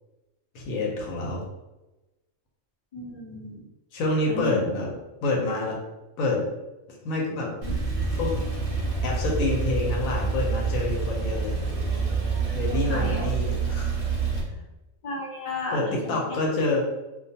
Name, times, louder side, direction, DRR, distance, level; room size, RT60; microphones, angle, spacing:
voice 1, 0.5-1.4 3.9-4.9 5.2-5.8 6.2-6.5 7.0-7.5 8.2-8.4 9.0-11.6 12.5-14.0 14.5-14.6 15.7-16.8, left 2 dB, 90° left, -1 dB, 1.1 m, -27 dB
voice 2, 2.9-3.6 4.3-4.6 12.9-13.2 15.0-16.2, left 1 dB, 35° left, -5 dB, 0.7 m, -33 dB
Male speech man speaking / Car / Idling, 7.6-14.4, right 4 dB, 65° right, 0.3 m, -27 dB
2.4 x 2.3 x 2.7 m, 1.0 s
omnidirectional pair, 1.4 m